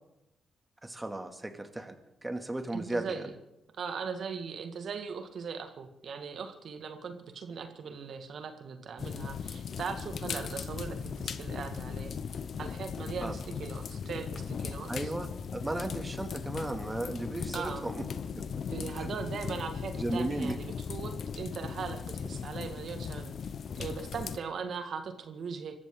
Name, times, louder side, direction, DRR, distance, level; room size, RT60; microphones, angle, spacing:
voice 1, 0.8-2.0 2.2-3.3 13.2-13.4 14.9-18.0 18.4-18.5 19.0-19.1 20.0-20.6, right 2 dB, 20° right, 6 dB, 2.5 m, -35 dB
voice 2, 2.7-3.3 3.8-12.1 12.6-15.1 17.5-17.9 18.7-23.3 23.8-25.8, right 6 dB, 65° right, 7 dB, 2.0 m, -39 dB
sound 1, 9.0-24.4, left 6 dB, 60° left, 0.8 m, -38 dB
25.0 x 14.0 x 3.9 m, 0.89 s
hypercardioid pair, 45°, 0 cm